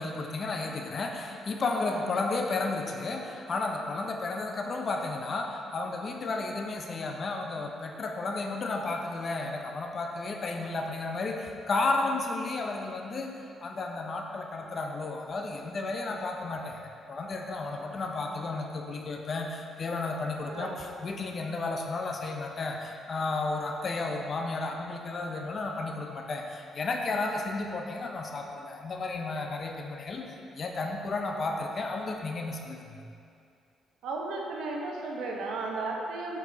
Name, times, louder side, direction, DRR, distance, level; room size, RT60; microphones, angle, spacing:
voice 1, 0.0-13.3 13.6-33.1, left 3 dB, 45° left, 2 dB, 0.6 m, -33 dB
voice 2, 20.5-20.8 34.0-36.4, right 3 dB, 85° right, -1 dB, 0.8 m, -34 dB
7.9 x 4.6 x 2.8 m, 2.5 s
cardioid pair, 90°, 0 cm